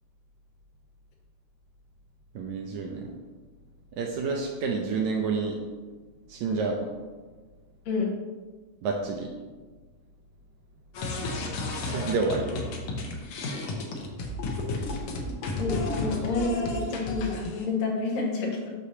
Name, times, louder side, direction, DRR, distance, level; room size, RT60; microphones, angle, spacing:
voice 1, 2.3-3.1 3.9-5.6 6.3-6.8 8.8-9.3 11.8-12.5, right 4 dB, 80° right, 1 dB, 1.7 m, -29 dB
sound 1, 10.9-17.7, left 2 dB, 70° left, 1.5 m, -32 dB
voice 2, 15.6-18.7, left 3 dB, 90° left, -2 dB, 2.9 m, -29 dB
8.1 x 6.0 x 2.8 m, 1.4 s
omnidirectional pair, 3.8 m